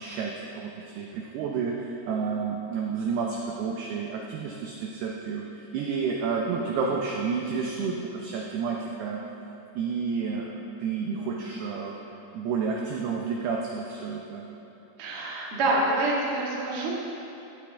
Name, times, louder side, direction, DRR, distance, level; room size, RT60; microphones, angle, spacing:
voice 1, 0.0-9.2 9.8-12.0 12.3-14.4, right 5 dB, 85° right, -1 dB, 2.3 m, -30 dB
voice 2, 15.0-16.9, right 2 dB, 60° right, -5 dB, 1.4 m, -26 dB
17.0 x 8.8 x 3.5 m, 2.9 s
omnidirectional pair, 5.6 m